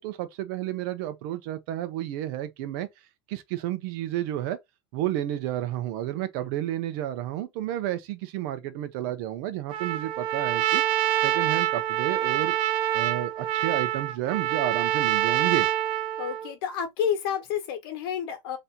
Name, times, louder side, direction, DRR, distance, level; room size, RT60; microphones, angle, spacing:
voice 1, 0.0-2.9 3.3-4.6 4.9-10.8 11.2-12.5 12.9-15.7, right 13 dB, 60° right, 0.9 m, -31 dB
Trumpet, 9.7-16.5, right 13 dB, 45° right, 0.5 m, -26 dB
voice 2, 16.2-18.6, left 8 dB, 75° left, 1.3 m, -29 dB
3.1 x 2.9 x 3.8 m
supercardioid pair, 140°, 13 cm